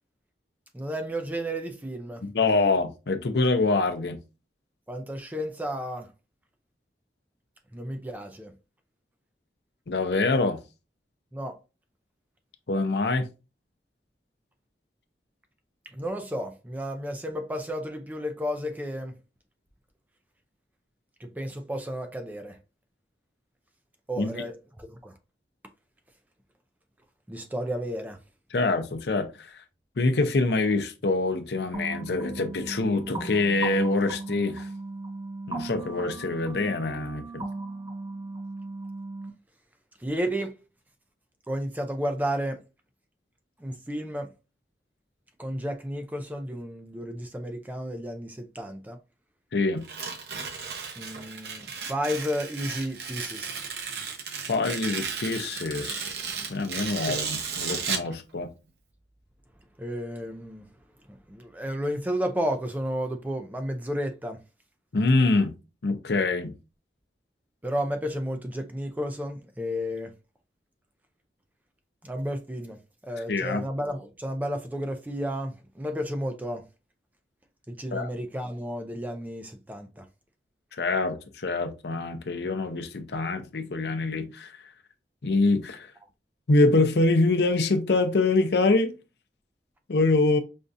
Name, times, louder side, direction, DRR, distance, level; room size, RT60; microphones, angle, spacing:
voice 1, 0.7-2.3 4.9-6.1 7.7-8.5 11.3-11.6 15.9-19.2 21.2-22.6 24.1-25.2 27.3-28.2 40.0-40.6 41.5-42.6 43.6-44.3 45.4-49.0 51.0-53.5 57.0-57.2 59.8-60.7 61.1-64.4 67.6-70.1 72.0-76.7 77.7-80.1, equal, 10° right, 0.4 m, -32 dB
voice 2, 2.3-4.2 9.9-10.6 12.7-13.3 24.2-24.4 28.5-29.6 30.0-34.7 35.5-37.4 49.5-49.9 54.5-56.1 56.5-58.5 64.9-65.5 65.8-66.5 73.3-73.6 77.9-78.1 80.7-84.6 85.2-85.9 86.5-89.0 89.9-90.4, left 3 dB, 70° left, 0.6 m, -25 dB
sound 1, 31.7-39.3, right 2 dB, 25° right, 0.7 m, -37 dB
Tearing, 49.8-58.1, right 5 dB, 70° right, 0.7 m, -34 dB
5.2 x 2.4 x 2.5 m
head